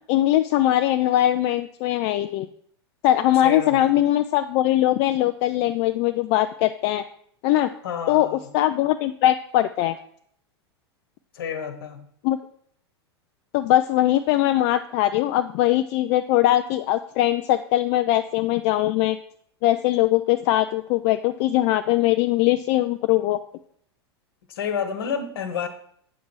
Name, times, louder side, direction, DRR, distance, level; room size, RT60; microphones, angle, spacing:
voice 1, 0.1-2.5 3.0-7.0 7.4-7.7 8.1-10.0 12.2-12.4 13.5-19.2 19.6-23.4, left 14 dB, 40° left, 0.4 m, -21 dB
voice 2, 3.4-3.9 7.8-8.4 11.3-12.0 24.5-25.7, left 7 dB, 60° left, 1.3 m, -29 dB
8.1 x 7.2 x 4.6 m
figure-of-eight pair, 90°, 14 cm